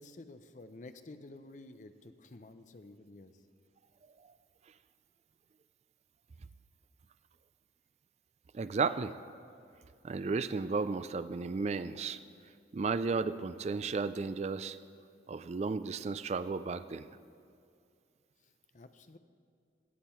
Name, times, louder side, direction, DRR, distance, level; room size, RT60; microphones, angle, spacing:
voice 1, 0.0-3.4 18.4-19.2, left 2 dB, 45° left, 10 dB, 0.5 m, -51 dB
voice 2, 8.5-9.1 10.0-12.2 12.7-14.8 15.3-17.1, right 4 dB, 40° right, 13 dB, 0.3 m, -33 dB
17.0 x 7.4 x 4.4 m, 2.4 s
head